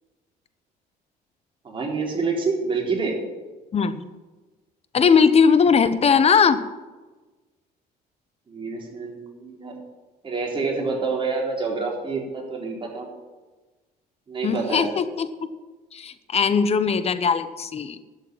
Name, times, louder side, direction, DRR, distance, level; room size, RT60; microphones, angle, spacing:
voice 1, 1.6-3.2 8.5-9.7 10.2-13.1 14.3-14.9, right 4 dB, 30° right, -1 dB, 4.1 m, -27 dB
voice 2, 4.9-6.6 14.4-15.3 15.9-18.0, left 6 dB, 35° left, 12 dB, 1.0 m, -19 dB
12.0 x 6.9 x 9.4 m, 1.2 s
cardioid pair, 110°, 17 cm